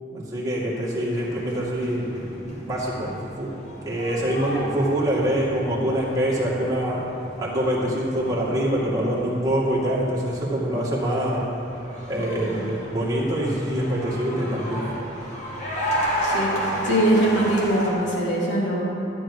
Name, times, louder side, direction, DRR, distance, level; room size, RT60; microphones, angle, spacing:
voice 1, 0.1-3.5 3.8-7.1 7.4-11.5 12.1-14.9, right 1 dB, 20° right, -6 dB, 2.3 m, -25 dB
sound 1, 0.8-17.9, equal, 40° left, 2.2 m, -33 dB
voice 2, 16.2-16.5 16.8-18.8, right 1 dB, 85° left, -5 dB, 3.1 m, -22 dB
13.5 x 9.7 x 5.0 m, 2.9 s
head